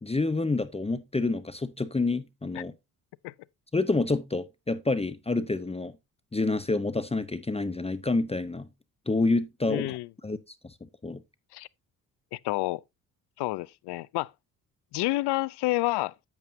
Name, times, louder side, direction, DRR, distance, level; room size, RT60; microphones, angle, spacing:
voice 1, 0.0-2.7 3.7-6.0 6.3-8.7 9.1-10.0 10.2-10.4 10.6-10.7 11.0-11.2, left 3 dB, 15° left, 0.7 m, -28 dB
voice 2, 9.7-10.1 11.5-11.7 12.3-12.8 13.4-14.3 14.9-16.1, left 19 dB, 65° left, 0.5 m, -29 dB
8.8 x 8.3 x 2.6 m
hypercardioid pair, 50°, 43 cm